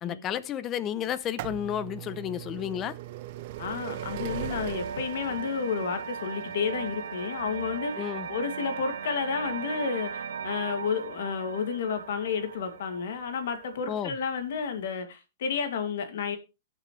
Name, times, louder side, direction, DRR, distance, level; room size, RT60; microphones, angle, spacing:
voice 1, 0.0-2.9 8.0-8.3 13.9-14.1, left 10 dB, 20° left, 0.7 m, -32 dB
sound 1, 1.0-12.7 13.5-13.6 14.6-14.7 14.9-15.0, right 15 dB, 40° right, 0.5 m, -41 dB
sound 2, 3.0-14.1, right 6 dB, 85° right, 1.3 m, -38 dB
voice 2, 3.6-16.4, left 6 dB, 65° left, 2.3 m, -31 dB
17.5 x 6.8 x 3.2 m
hypercardioid pair, 165°, 0 cm